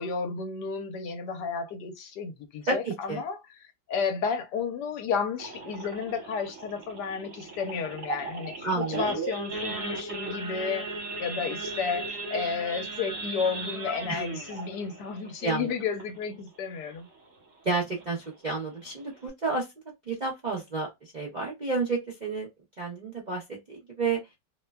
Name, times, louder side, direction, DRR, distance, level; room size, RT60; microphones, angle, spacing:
voice 1, 0.0-3.4 3.9-10.9 11.2-17.1, left 5 dB, 75° left, 1.2 m, -32 dB
voice 2, 2.7-3.2 8.6-9.0 14.1-14.2 15.4-15.7 17.6-19.7 20.1-22.5 22.8-23.4 23.7-24.2, right 3 dB, 50° right, 0.5 m, -30 dB
Idling / Accelerating revving vroom / Sawing, 5.4-16.5 16.9-17.1 17.3-17.4 17.9-18.2 18.7-18.8 19.0-19.3, right 3 dB, 70° right, 1.5 m, -36 dB
3.0 x 2.1 x 2.2 m
omnidirectional pair, 1.9 m